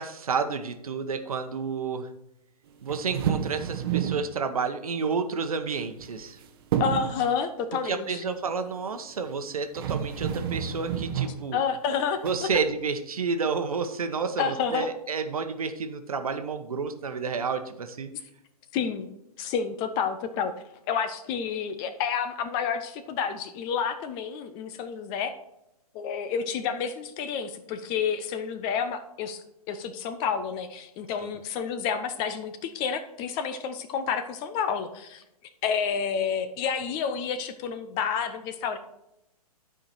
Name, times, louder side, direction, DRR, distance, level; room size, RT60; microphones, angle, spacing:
voice 1, 0.0-2.1 2.8-6.4 7.8-11.6 12.2-18.1 31.2-31.3, right 5 dB, 65° right, 8 dB, 1.0 m, -30 dB
sound 1, 2.9-4.3 5.8-6.4 6.7-7.2 9.3-9.4 9.7-11.4 12.3-12.6, right 9 dB, 35° right, 0.8 m, -29 dB
voice 2, 6.8-8.2 11.5-12.2 14.4-14.9 18.7-19.1 19.4-20.5 20.9-25.3 25.9-35.2 35.6-38.8, left 7 dB, 25° left, 10 dB, 0.5 m, -29 dB
11.0 x 4.9 x 4.3 m, 0.87 s
figure-of-eight pair, 125°, 20 cm